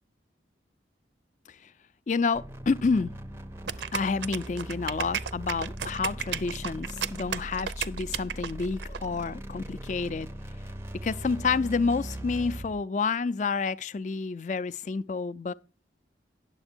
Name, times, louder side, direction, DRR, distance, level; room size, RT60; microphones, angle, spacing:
voice 1, 2.1-3.1 3.9-10.3 11.0-15.5, left 4 dB, 40° left, 0.4 m, -29 dB
sound 1, 2.3-12.8, right 1 dB, 15° right, 0.5 m, -40 dB
sound 2, 3.7-9.0, right 8 dB, 70° right, 0.5 m, -34 dB
9.8 x 7.3 x 4.4 m
head